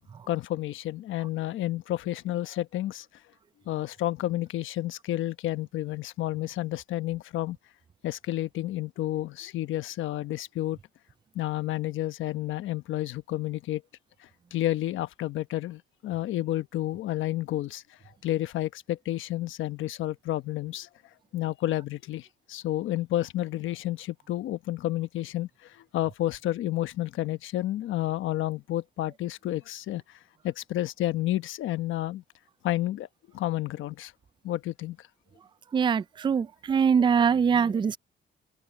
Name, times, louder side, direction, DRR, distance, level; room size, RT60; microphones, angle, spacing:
voice 1, 0.3-3.1 3.7-7.6 8.0-10.8 11.3-13.8 14.5-17.8 18.2-20.9 21.3-30.0 30.4-32.2 32.6-33.1 33.3-34.1 34.4-35.0, left 14 dB, 80° left, 1.0 m, -30 dB
voice 2, 35.7-38.0, right 6 dB, 25° right, 0.4 m, -23 dB
open air
cardioid pair, 90°, 20 cm